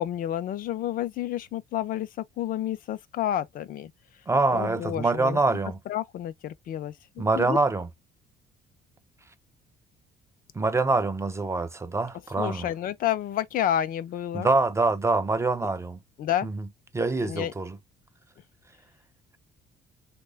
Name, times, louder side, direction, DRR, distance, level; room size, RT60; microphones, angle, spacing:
voice 1, 0.0-3.9 4.5-5.4 5.9-7.6 12.4-14.5 16.2-16.5 17.2-17.5, left 11 dB, 55° left, 0.5 m, -30 dB
voice 2, 4.3-5.8 7.2-7.9 10.5-12.7 14.3-16.0 16.4-16.7 16.9-17.8, right 3 dB, 15° right, 0.4 m, -25 dB
3.1 x 2.2 x 3.3 m
cardioid pair, 110°, 17 cm